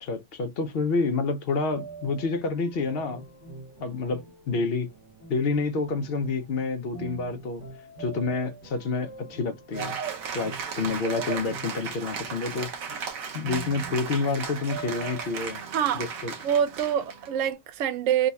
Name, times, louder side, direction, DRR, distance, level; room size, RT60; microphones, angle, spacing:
voice 1, 0.0-3.2 3.8-4.9 5.3-7.6 8.0-10.0 10.3-12.7 13.3-15.6 15.9-16.3, left 4 dB, 65° left, 0.6 m, -28 dB
sound 1, 1.5-17.5, right 4 dB, 30° right, 1.3 m, -45 dB
Cheering / Applause, 9.7-17.3, right 6 dB, 60° right, 1.2 m, -35 dB
voice 2, 15.7-16.1 16.4-18.3, right 9 dB, 75° right, 0.7 m, -25 dB
3.8 x 2.4 x 4.0 m
omnidirectional pair, 1.8 m